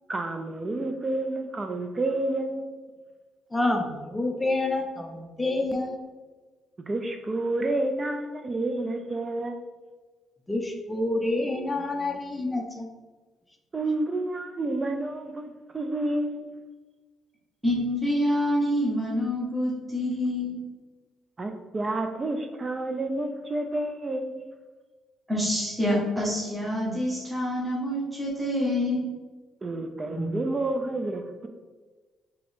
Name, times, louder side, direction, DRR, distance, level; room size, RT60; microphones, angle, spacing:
voice 1, 0.1-2.7 6.9-9.6 13.7-16.5 21.4-24.5 29.6-31.5, right 2 dB, 30° right, 6 dB, 0.4 m, -29 dB
voice 2, 3.5-6.0 10.5-12.9, left 2 dB, 15° left, 3 dB, 0.5 m, -28 dB
voice 3, 17.6-20.6 25.3-29.1 30.1-30.3, left 1 dB, 5° right, -7 dB, 1.5 m, -27 dB
3.7 x 3.4 x 3.5 m, 1.3 s
cardioid pair, 90°, 0 cm